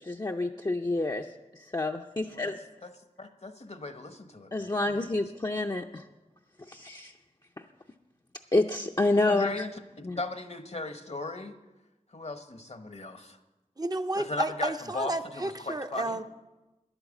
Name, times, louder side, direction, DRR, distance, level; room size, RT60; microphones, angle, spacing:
voice 1, 0.0-1.3 1.7-2.6 4.5-6.0 6.7-7.1 8.5-9.5 10.0-10.2, left 2 dB, 30° left, 1 dB, 0.5 m, -28 dB
voice 2, 3.2-5.1 9.2-9.7 10.0-11.6 12.1-13.4 14.1-16.2, left 2 dB, 55° left, 9 dB, 1.0 m, -37 dB
voice 3, 13.8-16.2, right 2 dB, 30° right, 7 dB, 0.6 m, -32 dB
10.5 x 8.9 x 7.1 m, 1.1 s
wide cardioid pair, 45°, 13 cm